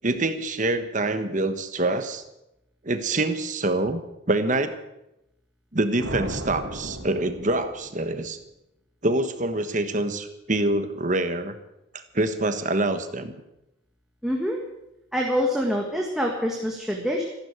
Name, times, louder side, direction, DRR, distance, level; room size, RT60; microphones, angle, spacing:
voice 1, 0.0-2.2 2.8-4.0 4.3-4.7 5.7-8.4 9.0-11.6 12.1-13.3, right 2 dB, 40° right, 9 dB, 1.3 m, -25 dB
sound 1, 6.0-8.3, right 1 dB, 70° right, 2.5 m, -35 dB
voice 2, 14.2-14.6 15.1-17.2, equal, ahead, -1 dB, 1.7 m, -25 dB
14.5 x 11.5 x 8.1 m, 0.89 s
head